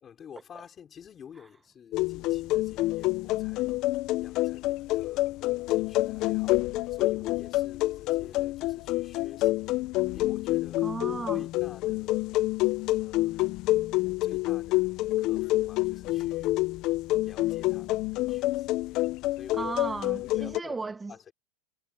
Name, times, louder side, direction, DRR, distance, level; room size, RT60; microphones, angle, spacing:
voice 1, 0.0-3.8 4.2-5.4 5.7-10.9 11.3-12.4 13.0-13.6 14.2-16.6 17.2-18.8 19.1-19.7 20.0-20.8 21.1-21.3, left 8 dB, 25° left, 3.7 m, -49 dB
sound 1, 1.9-20.6, left 18 dB, 40° left, 0.5 m, -28 dB
voice 2, 10.8-11.4 19.5-21.3, right 3 dB, 10° right, 0.8 m, -35 dB
supercardioid pair, 155°, 0 cm